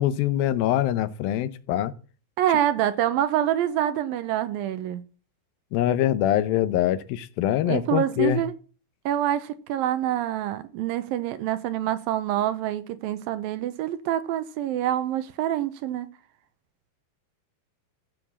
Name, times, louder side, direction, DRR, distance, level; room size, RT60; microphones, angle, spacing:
voice 1, 0.0-1.9 5.7-8.4, left 12 dB, 75° left, 2.4 m, -24 dB
voice 2, 2.4-5.0 7.7-8.5 9.1-16.1, right 11 dB, 75° right, 2.4 m, -26 dB
15.0 x 7.0 x 7.2 m
omnidirectional pair, 4.5 m